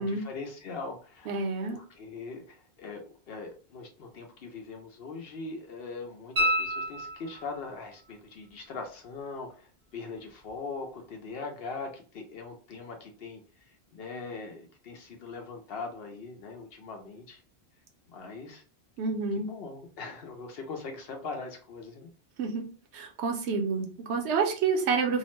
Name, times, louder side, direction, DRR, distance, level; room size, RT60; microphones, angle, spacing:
voice 1, 0.0-1.4 1.7-17.4 18.1-18.6 19.4-22.1, left 4 dB, 65° left, 3 dB, 0.8 m, -41 dB
voice 2, 1.3-1.8 19.0-19.5 22.4-22.7 22.9-25.2, right 4 dB, 80° right, 3 dB, 0.9 m, -28 dB
sound 1, 6.4-7.7 10.5-10.6, equal, 45° right, 0.5 m, -29 dB
2.8 x 2.0 x 3.0 m, 0.38 s
omnidirectional pair, 1.1 m